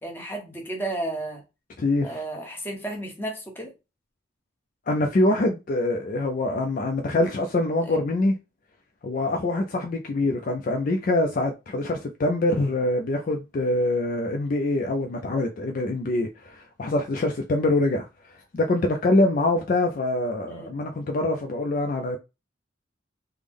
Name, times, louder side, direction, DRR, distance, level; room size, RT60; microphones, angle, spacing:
voice 1, 0.0-1.4 2.0-3.7 7.9-8.0 20.5-20.7, right 2 dB, 10° left, 0.8 m, -33 dB
voice 2, 1.8-2.2 4.9-8.4 9.0-22.2, left 2 dB, 40° left, 0.3 m, -24 dB
3.3 x 2.0 x 3.5 m
head